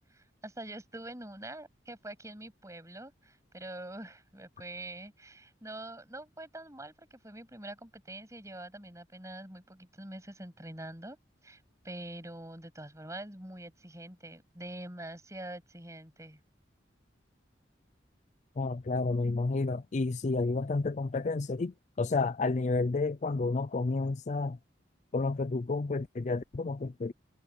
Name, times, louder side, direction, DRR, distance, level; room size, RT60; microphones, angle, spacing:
voice 1, 0.1-11.2 11.4-16.4, right 1 dB, 15° right, 7.6 m, -45 dB
voice 2, 18.6-24.6 25.1-27.1, left 3 dB, 40° left, 0.4 m, -30 dB
head